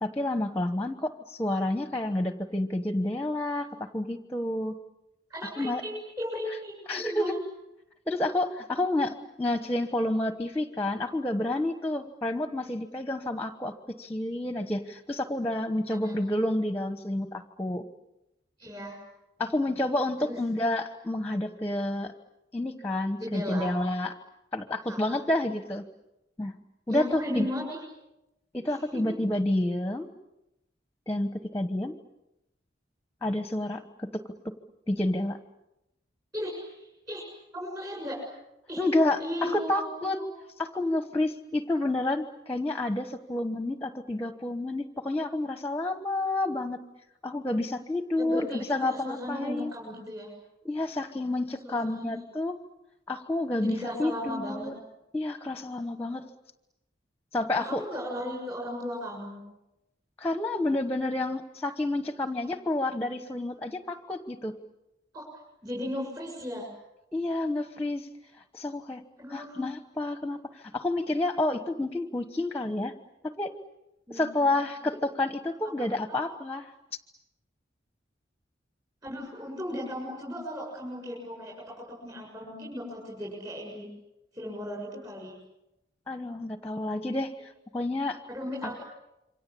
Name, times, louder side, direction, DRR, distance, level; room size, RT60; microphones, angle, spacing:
voice 1, 0.0-4.8 5.6-5.8 6.5-6.6 6.9-7.4 8.1-17.8 19.4-22.1 22.5-24.1 24.5-25.8 26.4-26.5 26.9-27.5 28.5-30.1 31.1-31.9 33.2-34.2 34.9-35.4 38.8-40.2 40.6-46.8 47.2-49.7 50.6-52.6 53.1-54.7 55.1-56.3 57.3-57.8 60.2-64.5 67.1-68.1 68.5-69.0 69.3-72.9 73.2-73.5 74.1-76.6 86.1-88.2 88.6-88.8, left 1 dB, 10° left, 8 dB, 1.1 m, -29 dB
voice 2, 5.3-7.4 15.9-16.2 18.6-19.0 20.2-20.4 23.2-23.7 24.9-25.2 26.9-27.8 28.6-29.2 36.3-37.3 37.5-38.2 38.7-38.8 39.2-39.9 48.2-50.3 51.6-52.2 53.6-54.7 57.6-59.4 65.1-65.3 65.6-66.7 69.2-69.6 74.1-74.2 76.1-76.2 79.0-83.9 84.3-85.3 88.3-88.9, equal, 20° right, -3 dB, 7.1 m, -36 dB
28.0 x 25.0 x 8.5 m, 0.92 s
head